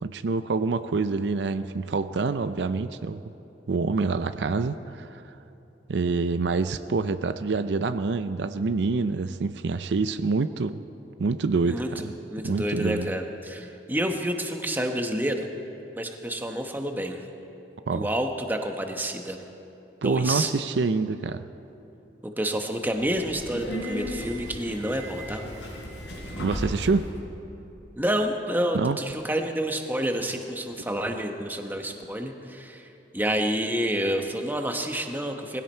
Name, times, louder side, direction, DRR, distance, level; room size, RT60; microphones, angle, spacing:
voice 1, 0.0-3.2 3.7-5.2 5.9-10.8 11.2-12.1 12.4-13.1 17.9-18.1 20.0-21.4 26.4-27.1 28.7-29.0, right 4 dB, 75° right, 11 dB, 0.5 m, -26 dB
voice 2, 11.7-15.5 16.0-17.2 17.9-19.4 20.0-20.5 22.4-25.4 28.0-32.9 33.1-35.6, right 1 dB, 10° right, 4 dB, 1.0 m, -29 dB
Subway metro underground, 22.9-27.1, equal, 85° left, 4.2 m, -35 dB
20.0 x 16.0 x 4.4 m, 2.9 s
head